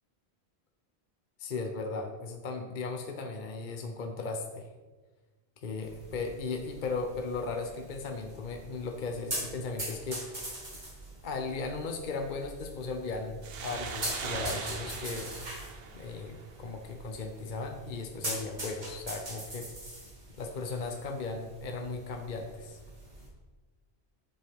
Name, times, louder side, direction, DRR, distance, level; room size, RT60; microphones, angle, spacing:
voice 1, 1.4-4.7 5.6-10.6 11.2-15.4 15.9-19.7 20.4-22.8, left 3 dB, 50° left, 4 dB, 0.8 m, -37 dB
sound 1, 5.8-23.3, right 1 dB, 45° right, 1.9 m, -43 dB
sound 2, 13.4-16.8, right 5 dB, 65° right, 1.0 m, -40 dB
7.8 x 7.3 x 3.5 m, 1.3 s
omnidirectional pair, 1.1 m